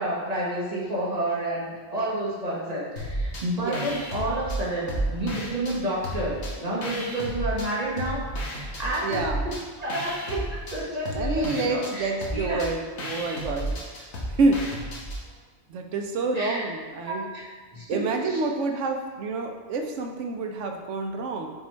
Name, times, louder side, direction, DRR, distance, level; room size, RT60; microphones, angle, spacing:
voice 1, 0.0-9.2 9.4-10.4 10.7-12.7 16.3-16.6 16.9-17.4 17.7-18.0 18.3-18.4, right 1 dB, 35° right, -6 dB, 1.5 m, -30 dB
sound 1, 3.0-3.4 3.7-5.8 6.0-7.7 8.0-15.2, equal, 75° left, 1.5 m, -32 dB
voice 2, 9.0-9.5 11.1-14.6 15.7-17.3 17.9-21.5, right 3 dB, 85° right, 4 dB, 1.1 m, -28 dB
5.7 x 3.8 x 4.4 m, 1.4 s
omnidirectional pair, 1.2 m